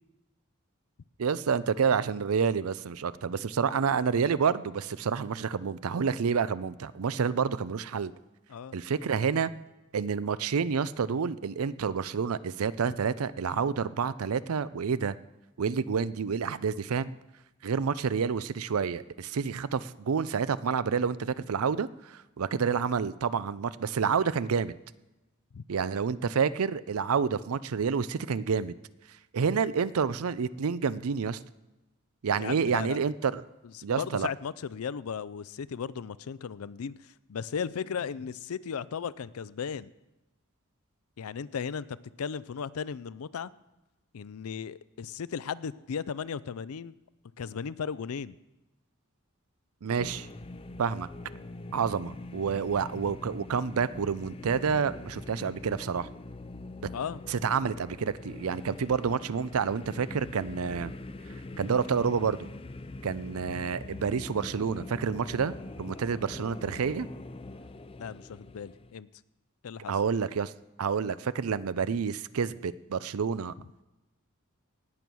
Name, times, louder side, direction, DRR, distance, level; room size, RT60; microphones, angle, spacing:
voice 1, 1.2-8.1 8.7-9.5 9.9-15.2 15.6-17.1 17.6-24.7 25.7-28.7 29.3-31.4 32.2-33.4 33.8-34.3 49.8-50.3 50.8-51.1 51.7-56.1 57.3-60.9 61.6-62.4 63.0-67.1 69.9-70.5 70.8-73.5, right 6 dB, 80° right, 17 dB, 0.5 m, -29 dB
voice 2, 32.4-33.0 33.7-36.9 37.3-39.9 41.2-41.9 42.2-43.5 44.1-46.9 47.4-48.4 56.9-57.2 61.5-61.7 68.0-69.1 69.6-69.9, left 6 dB, 85° left, 18 dB, 0.5 m, -36 dB
sound 1, 50.0-68.9, left 2 dB, 25° left, 0.5 m, -43 dB
18.5 x 7.0 x 6.2 m, 1.0 s
head